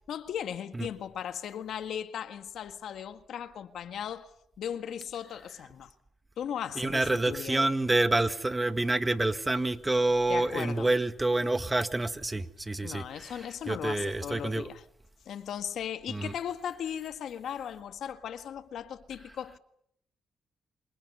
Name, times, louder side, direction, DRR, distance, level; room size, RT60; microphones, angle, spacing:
voice 1, 0.1-4.3 4.6-5.9 6.4-7.7 10.3-10.9 12.8-14.8 15.3-19.6, left 9 dB, 70° left, 1.7 m, -37 dB
voice 2, 6.8-14.7 16.1-16.3, right 2 dB, 15° right, 1.7 m, -28 dB
29.5 x 27.0 x 5.6 m
cardioid pair, 90°, 0 cm